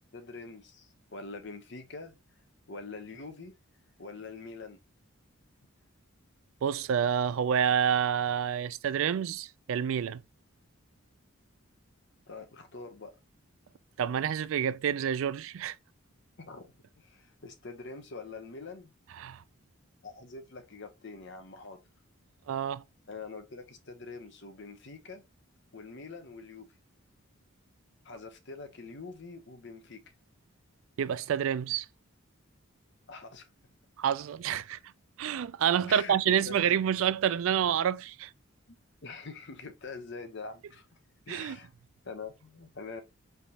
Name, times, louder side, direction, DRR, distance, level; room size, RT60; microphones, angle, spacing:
voice 1, 0.1-2.2 2.7-3.5 4.0-4.8 12.3-13.1 16.4-18.9 20.0-21.8 23.1-25.2 25.7-26.7 28.0-30.0 33.1-33.5 35.8-36.8 38.7-40.9 41.3-41.7 42.0-43.0, left 4 dB, 50° left, 0.8 m, -44 dB
voice 2, 6.6-10.2 14.0-15.7 19.2-19.4 22.5-22.8 31.0-31.9 34.0-34.8 35.2-38.3 41.3-41.6, right 8 dB, 65° right, 0.3 m, -28 dB
4.9 x 3.3 x 2.8 m
head